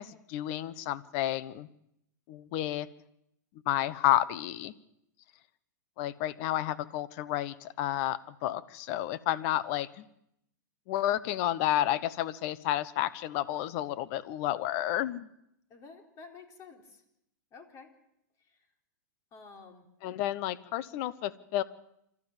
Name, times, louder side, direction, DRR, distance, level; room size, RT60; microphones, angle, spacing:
voice 1, 0.0-1.7 2.3-2.9 3.7-4.7 6.0-10.1 10.9-15.3 20.0-21.6, left 13 dB, 45° left, 17 dB, 1.1 m, -31 dB
voice 2, 15.7-16.8 17.5-17.9 19.3-19.9, left 4 dB, 30° left, 4 dB, 3.8 m, -50 dB
27.0 x 13.5 x 7.4 m, 0.79 s
hypercardioid pair, 125°, 10 cm